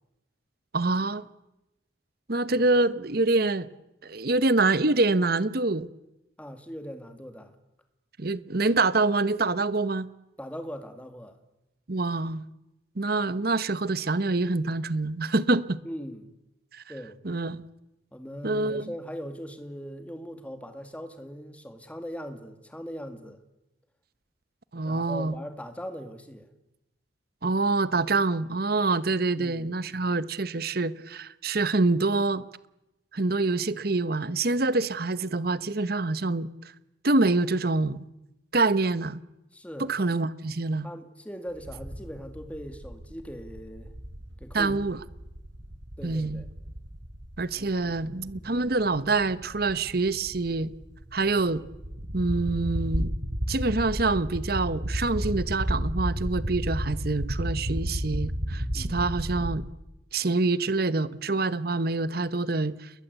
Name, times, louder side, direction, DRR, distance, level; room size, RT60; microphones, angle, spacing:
voice 1, 0.7-1.2 2.3-3.7 4.0-5.9 8.2-10.1 11.9-12.5 13.0-15.6 16.7-16.8 17.2-17.6 18.4-18.9 24.7-25.3 27.4-32.4 33.1-36.5 37.0-38.1 38.5-39.2 39.8-40.9 44.5-45.0 46.0-46.4 47.4-50.7 51.1-51.6 52.1-53.1 53.5-59.7 60.1-62.9, right 3 dB, 50° right, 1.0 m, -26 dB
voice 2, 6.4-7.5 10.4-11.4 15.8-16.3 16.9-17.2 18.1-23.4 24.8-26.5 29.4-29.7 39.5-39.9 40.8-43.9 44.4-44.8 46.0-46.5 58.7-59.0, equal, 5° left, 2.3 m, -40 dB
sound 1, 41.6-59.5, equal, 70° right, 4.9 m, -33 dB
29.0 x 21.5 x 8.2 m
head